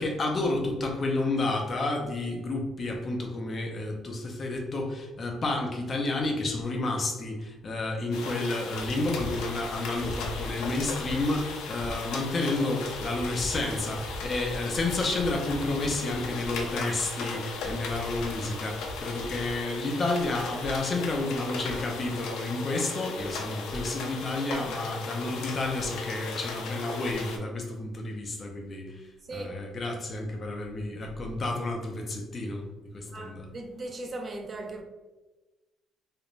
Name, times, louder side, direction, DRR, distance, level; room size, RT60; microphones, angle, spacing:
voice 1, 0.0-29.0 29.3-32.7 32.9-33.5, left 2 dB, 30° left, 0.5 m, -30 dB
sound 1, 8.1-27.4, left 3 dB, 90° left, 0.4 m, -36 dB
voice 2, 33.1-34.8, right 2 dB, 30° right, 0.4 m, -38 dB
2.4 x 2.1 x 3.0 m
cardioid pair, 145°, 0 cm